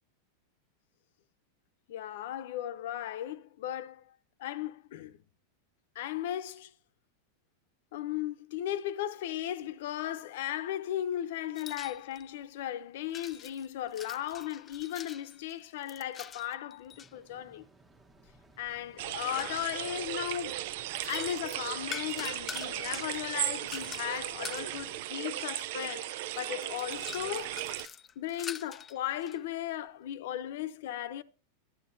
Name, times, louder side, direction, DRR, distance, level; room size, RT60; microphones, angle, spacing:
voice 1, 1.9-4.1 4.4-5.2 5.9-6.7 7.9-17.6 18.6-20.6 21.1-27.6 28.2-31.2, left 12 dB, 70° left, 0.8 m, -36 dB
sound 1, 11.6-12.3 13.1-17.1 18.0-20.0 20.7-24.8 25.7-25.8 26.1-29.4, left 7 dB, 20° left, 0.5 m, -46 dB
sound 2, 16.9-24.9, right 3 dB, 10° right, 1.2 m, -61 dB
sound 3, 19.0-27.9, right 14 dB, 60° right, 0.5 m, -36 dB
12.5 x 9.6 x 2.7 m
supercardioid pair, 145°, 0 cm